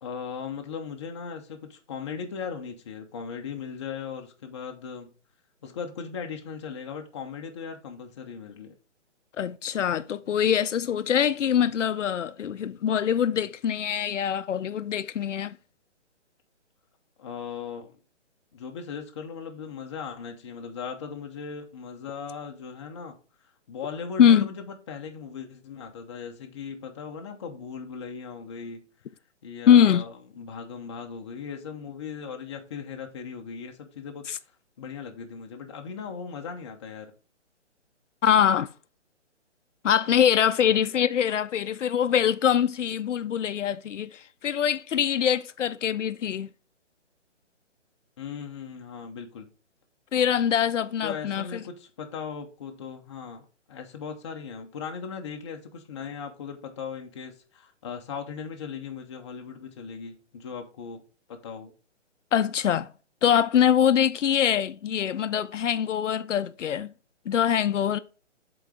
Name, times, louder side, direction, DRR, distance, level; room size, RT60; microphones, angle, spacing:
voice 1, 0.0-5.2 5.6-8.8 17.2-18.0 18.5-23.2 23.7-28.9 29.4-34.3 34.8-37.1 48.2-49.5 51.0-61.0 61.3-61.7, left 6 dB, 25° left, 0.6 m, -38 dB
voice 2, 9.4-15.6 24.2-24.5 29.7-30.0 34.3-34.4 38.2-38.7 39.8-46.5 50.1-51.6 62.3-62.9 63.2-66.9 67.3-68.0, left 9 dB, 80° left, 0.5 m, -23 dB
7.9 x 3.9 x 3.6 m
hypercardioid pair, 150°, 37 cm